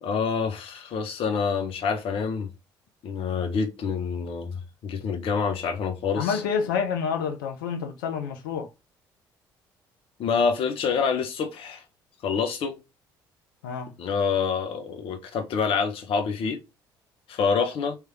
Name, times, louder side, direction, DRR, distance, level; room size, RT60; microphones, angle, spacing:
voice 1, 0.0-2.5 3.0-6.4 10.2-11.8 12.2-12.8 14.0-16.6 17.3-18.0, left 5 dB, 60° left, 1.2 m, -27 dB
voice 2, 6.2-8.7 13.6-13.9, left 6 dB, 80° left, 0.7 m, -28 dB
3.5 x 3.3 x 3.1 m
hypercardioid pair, 55°, 11 cm